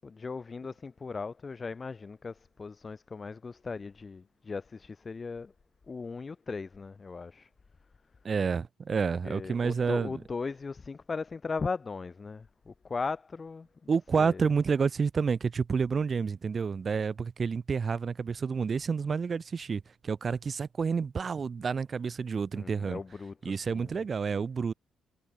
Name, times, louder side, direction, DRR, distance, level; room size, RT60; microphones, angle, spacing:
voice 1, 0.0-5.5 5.9-7.5 9.2-13.9 14.2-14.5 22.5-24.0, left 4 dB, 30° left, 6.5 m, -38 dB
voice 2, 8.2-10.2 13.9-23.0 23.4-24.7, right 5 dB, 40° right, 2.5 m, -29 dB
cardioid pair, 90°, 0 cm